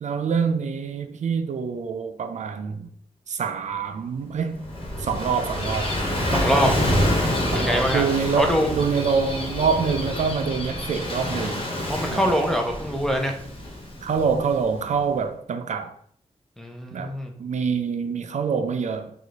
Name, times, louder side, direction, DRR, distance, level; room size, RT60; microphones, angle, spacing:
voice 1, 0.0-2.9 3.3-4.6 5.0-5.9 6.3-6.4 7.5-11.7 12.1-12.3 14.0-15.9 16.9-17.1 17.4-19.1, right 6 dB, 80° right, 0.5 m, -26 dB
Gull seagull / Waves surf, 4.4-14.9, left 1 dB, 45° left, 1.2 m, -27 dB
voice 2, 6.3-6.7 7.5-8.0 8.4-8.7 11.9-13.3 16.6-17.3, equal, 5° left, 0.7 m, -23 dB
4.8 x 2.4 x 4.0 m
wide cardioid pair, 125°, 12 cm